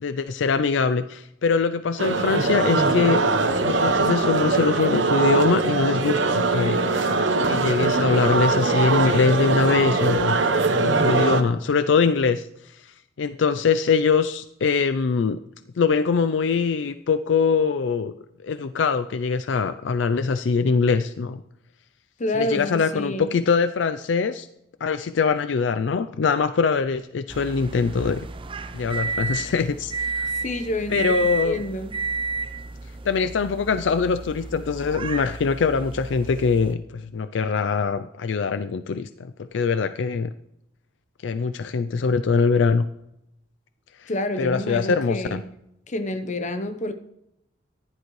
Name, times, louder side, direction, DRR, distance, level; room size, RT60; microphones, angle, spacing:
voice 1, 0.0-3.2 3.6-6.8 7.4-10.4 10.7-12.5 13.2-15.4 15.8-18.1 18.4-21.4 22.3-24.5 24.8-28.2 28.7-30.3 30.9-31.6 33.1-40.3 41.2-42.9 44.0-44.1 44.4-45.4, left 5 dB, 75° left, 11 dB, 0.4 m, -23 dB
sound 1, 2.0-11.4, right 3 dB, 85° right, 1.0 m, -21 dB
voice 2, 22.2-23.3 30.4-31.1 31.4-32.0 44.1-45.4 45.9-46.9, left 1 dB, 40° left, 10 dB, 0.9 m, -28 dB
sound 2, 27.3-36.7, right 4 dB, 30° right, 0.6 m, -32 dB
14.5 x 10.5 x 3.2 m, 0.80 s
head